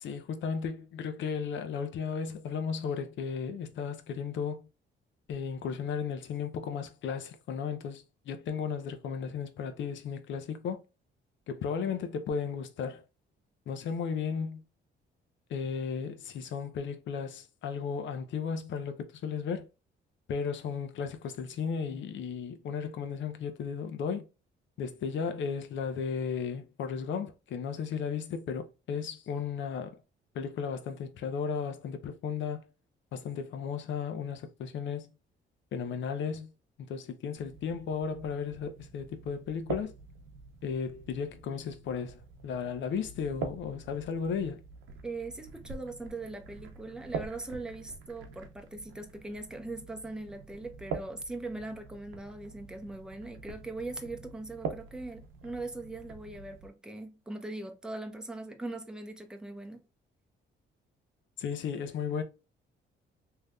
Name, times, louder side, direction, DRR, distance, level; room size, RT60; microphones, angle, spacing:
voice 1, 0.0-4.7 5.3-10.8 11.5-13.0 13.7-14.6 15.5-19.7 20.3-24.3 24.8-30.0 30.3-32.7 33.1-35.1 35.7-36.5 36.8-39.9 40.6-44.6 61.4-62.2, left 6 dB, 70° left, 0.7 m, -35 dB
sound 1, 37.3-56.7, right 5 dB, 80° right, 0.7 m, -45 dB
voice 2, 45.0-59.8, right 2 dB, 5° right, 0.7 m, -40 dB
3.3 x 2.8 x 2.3 m
cardioid pair, 90°, 20 cm